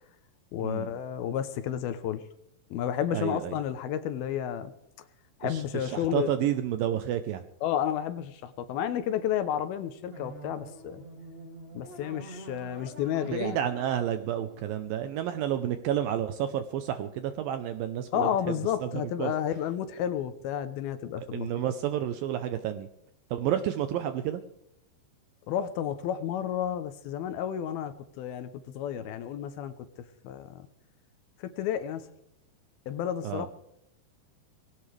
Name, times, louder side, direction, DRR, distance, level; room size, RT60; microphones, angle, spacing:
voice 1, 0.5-2.2 2.7-4.7 5.4-6.3 7.6-11.0 11.7-13.6 18.1-21.6 25.5-29.9 30.2-30.7 31.4-32.1 32.9-33.5, left 10 dB, 80° left, 11 dB, 2.5 m, -31 dB
voice 2, 3.1-3.6 5.4-7.4 13.3-18.3 18.8-19.3 21.3-22.9 23.3-24.4 33.2-33.5, right 10 dB, 80° right, 9 dB, 2.1 m, -30 dB
sound 1, 10.1-15.2, right 2 dB, 20° right, 1.7 m, -46 dB
21.0 x 17.0 x 3.3 m, 0.80 s
omnidirectional pair, 4.8 m